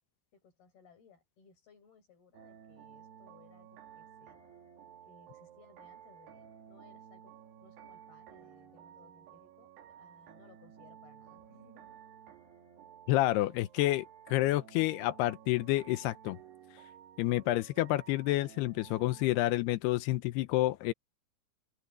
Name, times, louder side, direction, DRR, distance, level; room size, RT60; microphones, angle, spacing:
voice 1, 0.3-4.4 5.1-7.3 7.6-9.7 10.0-12.0, left 5 dB, 65° left, 9.0 m, -62 dB
sound 1, 2.3-19.2, right 9 dB, 80° right, 4.3 m, -54 dB
voice 2, 13.1-14.1 14.3-16.4 17.2-20.9, left 16 dB, 85° left, 2.7 m, -29 dB
open air
omnidirectional pair, 4.7 m